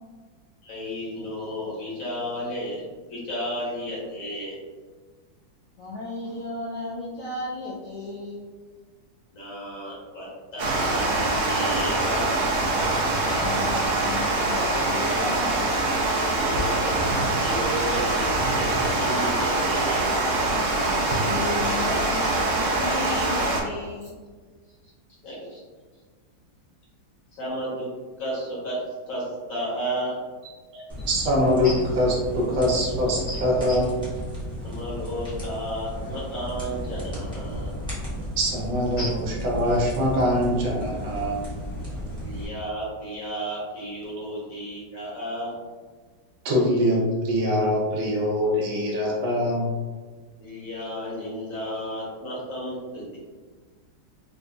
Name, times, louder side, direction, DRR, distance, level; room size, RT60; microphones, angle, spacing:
voice 1, 0.6-4.6 9.3-12.4 16.4-17.0 17.4-20.1 25.2-25.6 27.3-27.9 28.2-28.8 29.1-30.2 31.6-31.8 33.3-33.4 33.7-33.8 34.6-37.7 39.0-39.1 42.2-45.5 50.4-53.2, equal, 50° left, -7 dB, 1.1 m, -33 dB
voice 2, 5.8-8.5 13.1-15.5 21.2-24.1, left 2 dB, 70° left, -6 dB, 0.9 m, -34 dB
Water, 10.6-23.6, right 2 dB, 90° right, 0.6 m, -24 dB
voice 3, 30.7-31.7 32.0-33.9 38.4-41.5 46.4-49.7, equal, 70° right, -3 dB, 1.5 m, -23 dB
sound 1, 30.9-42.5, equal, 5° left, 0.5 m, -34 dB
4.0 x 2.6 x 2.3 m, 1.4 s
omnidirectional pair, 2.2 m